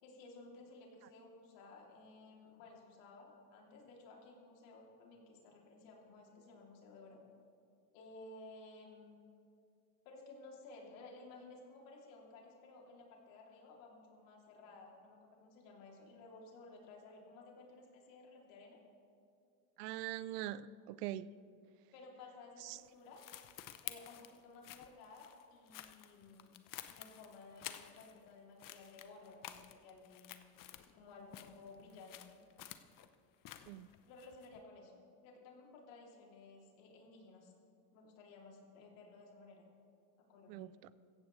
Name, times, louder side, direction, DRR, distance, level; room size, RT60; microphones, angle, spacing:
voice 1, 0.0-7.2 7.9-9.2 10.0-18.8 21.9-23.2 23.8-26.5 26.9-30.3 30.8-32.3 34.1-37.5 37.9-39.6 40.2-40.7, left 3 dB, 70° left, -1 dB, 3.0 m, -56 dB
voice 2, 19.8-21.3 22.6-22.8 33.7-33.9 40.5-40.7, right 13 dB, 85° right, 18 dB, 0.6 m, -42 dB
sound 1, 22.7-28.3 28.6-31.0 31.3-34.6, left 12 dB, 45° left, 0.8 m, -52 dB
16.5 x 15.0 x 3.2 m, 2.4 s
supercardioid pair, 100°, 46 cm